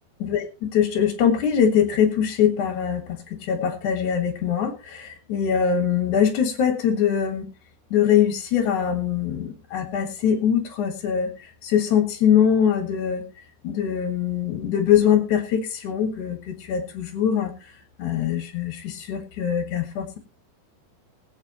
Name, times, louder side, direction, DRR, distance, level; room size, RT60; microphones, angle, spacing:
voice 1, 0.3-7.5 7.9-13.2 13.6-20.2, left 8 dB, 60° left, 4 dB, 2.9 m, -23 dB
22.0 x 8.1 x 3.0 m, 0.32 s
omnidirectional pair, 4.3 m